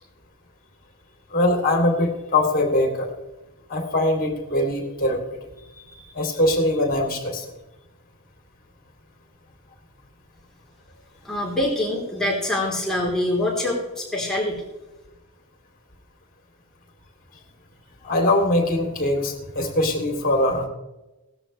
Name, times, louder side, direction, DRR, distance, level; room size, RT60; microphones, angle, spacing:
voice 1, 1.3-3.1 3.7-5.4 5.8-7.4 18.0-20.7, left 1 dB, 40° left, 2 dB, 2.9 m, -22 dB
voice 2, 11.2-14.6, left 1 dB, 5° left, -4 dB, 3.6 m, -25 dB
17.5 x 13.0 x 3.3 m, 1.0 s
head